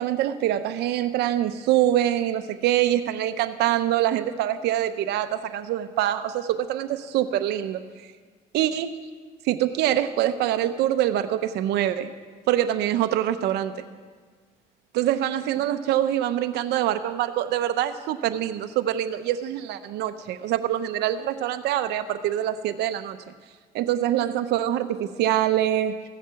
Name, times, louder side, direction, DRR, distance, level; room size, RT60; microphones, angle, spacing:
voice 1, 0.0-7.8 8.5-8.9 9.4-12.1 12.5-13.8 14.9-23.2 23.7-25.9, right 12 dB, 80° right, 9 dB, 0.7 m, -24 dB
15.5 x 7.6 x 6.9 m, 1.5 s
cardioid pair, 110°, 17 cm